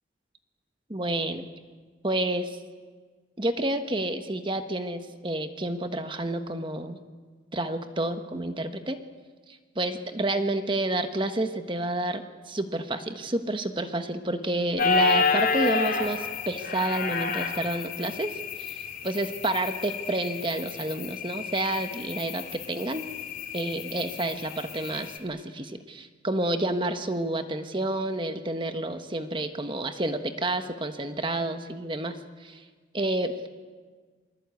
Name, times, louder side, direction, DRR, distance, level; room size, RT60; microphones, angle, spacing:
voice 1, 0.9-1.5 2.0-2.6 3.4-7.0 7.5-9.0 9.7-18.3 18.6-23.1 23.5-32.6 32.9-33.5, right 1 dB, 25° right, 8 dB, 1.3 m, -29 dB
sound 1, 14.8-25.2, left 4 dB, 50° left, 3.6 m, -30 dB
28.0 x 21.5 x 8.4 m, 1.5 s
head